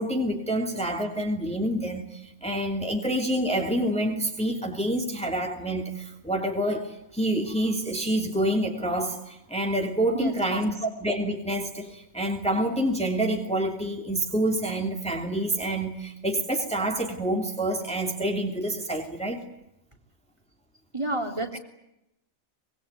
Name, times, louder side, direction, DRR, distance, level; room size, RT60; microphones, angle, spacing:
voice 1, 0.0-19.4, right 1 dB, 5° left, 2 dB, 2.8 m, -27 dB
voice 2, 10.1-10.6 20.9-21.6, right 2 dB, 20° right, 5 dB, 3.4 m, -30 dB
25.0 x 23.0 x 9.1 m, 0.86 s
omnidirectional pair, 1.4 m